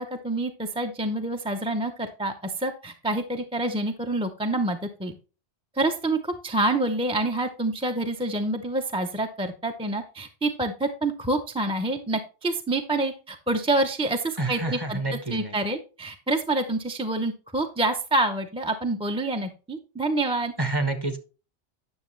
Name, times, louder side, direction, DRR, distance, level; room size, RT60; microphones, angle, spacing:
voice 1, 0.0-5.1 5.7-15.0 15.3-20.5, right 2 dB, 5° right, 4 dB, 0.5 m, -27 dB
voice 2, 14.4-15.5 20.6-21.2, right 2 dB, 25° right, 8 dB, 1.0 m, -28 dB
9.6 x 6.5 x 3.2 m, 0.33 s
omnidirectional pair, 1.1 m